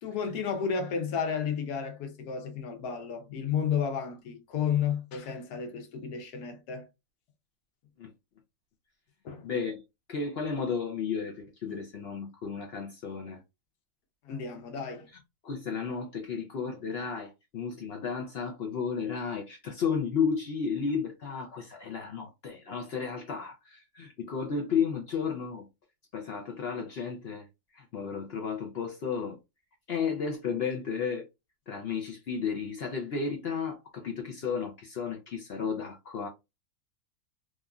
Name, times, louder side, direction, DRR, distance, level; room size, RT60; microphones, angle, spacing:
voice 1, 0.0-6.9 9.2-9.5 14.2-15.1, left 7 dB, 90° left, 1.3 m, -32 dB
voice 2, 9.4-9.8 10.1-13.4 15.4-25.7 26.1-27.4 27.7-29.4 29.9-31.2 31.7-36.3, left 6 dB, 65° left, 0.6 m, -33 dB
3.0 x 2.4 x 2.3 m
omnidirectional pair, 1.6 m